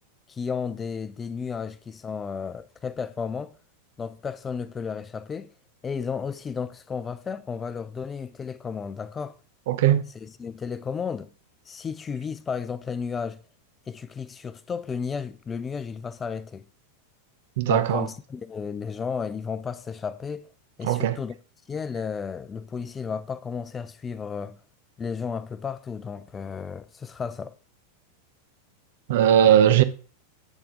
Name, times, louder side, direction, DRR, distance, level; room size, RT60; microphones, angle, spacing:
voice 1, 0.3-3.5 4.0-5.5 5.8-9.3 10.2-11.3 11.7-13.4 13.9-16.6 17.7-20.5 20.8-21.4 21.7-24.6 25.0-27.5, left 6 dB, 20° left, 0.6 m, -33 dB
voice 2, 9.7-10.1 17.6-18.1 20.8-21.2 29.1-29.8, right 10 dB, 55° right, 0.8 m, -19 dB
9.0 x 6.9 x 3.6 m
figure-of-eight pair, 90°, 0 cm